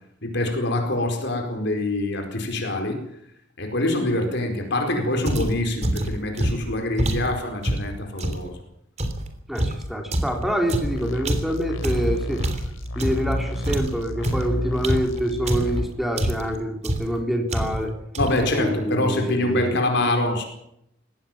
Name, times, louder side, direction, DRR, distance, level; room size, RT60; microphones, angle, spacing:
voice 1, 0.2-3.0 3.6-8.5 18.2-20.5, left 1 dB, 60° left, 4 dB, 4.6 m, -25 dB
sound 1, 5.3-8.5 9.0-13.4 13.6-15.8 16.2-16.6 16.8-17.2 17.5-17.9 18.1-18.5, right 1 dB, 35° right, 3.3 m, -26 dB
voice 2, 9.5-12.4 13.0-18.1 18.4-19.8, equal, ahead, 3 dB, 3.7 m, -26 dB
sound 2, 10.8-15.8, equal, 80° left, 3.5 m, -30 dB
22.0 x 17.5 x 7.4 m, 0.75 s
head